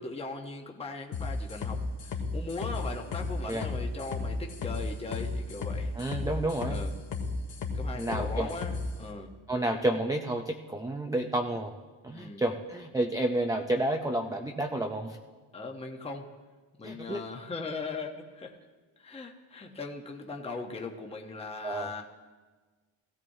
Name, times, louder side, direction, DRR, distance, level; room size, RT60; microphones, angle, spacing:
voice 1, 0.0-6.0 6.7-6.9 7.7-9.3 12.1-12.4 15.5-16.3 16.8-18.6 19.0-22.0, left 3 dB, 10° left, 2 dB, 0.8 m, -39 dB
sound 1, 1.1-8.9, left 4 dB, 55° left, 1.9 m, -33 dB
voice 2, 6.0-6.8 8.0-8.5 9.5-11.7 12.0-15.2 16.8-17.2 21.6-21.9, right 1 dB, 10° right, 3 dB, 0.3 m, -30 dB
19.0 x 15.5 x 2.7 m, 1.4 s
cardioid pair, 160°, 50 cm